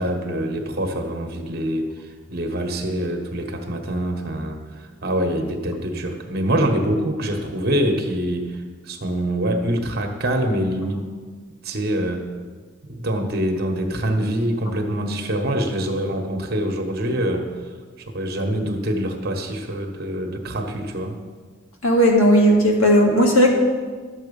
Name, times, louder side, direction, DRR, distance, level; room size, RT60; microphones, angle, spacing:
voice 1, 0.0-11.0 11.6-12.3 12.8-17.6 18.1-21.2, right 1 dB, 50° right, 4 dB, 1.3 m, -25 dB
voice 2, 21.8-23.5, equal, 85° left, -1 dB, 2.2 m, -15 dB
12.0 x 7.5 x 5.4 m, 1.5 s
head